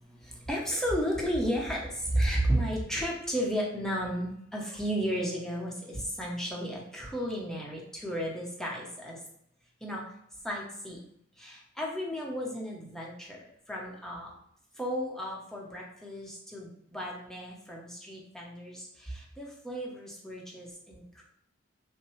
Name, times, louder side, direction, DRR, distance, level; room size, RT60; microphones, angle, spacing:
voice 1, 0.1-9.2 9.8-10.0 10.4-11.0 11.4-14.3 14.8-21.2, equal, 5° left, -3 dB, 0.9 m, -33 dB
5.7 x 2.2 x 3.2 m, 0.71 s
head